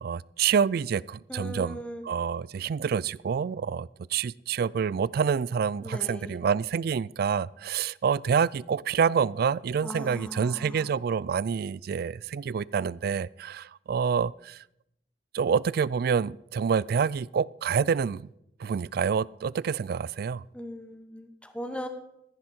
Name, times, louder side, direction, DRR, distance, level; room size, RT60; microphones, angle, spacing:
voice 1, 0.0-1.8 2.0-14.6 15.3-18.3 18.6-20.4, right 6 dB, 60° right, 0.3 m, -27 dB
voice 2, 1.3-2.1 5.8-6.3 9.8-10.9 20.5-21.9, equal, 5° left, 1.2 m, -38 dB
15.0 x 10.0 x 4.4 m
head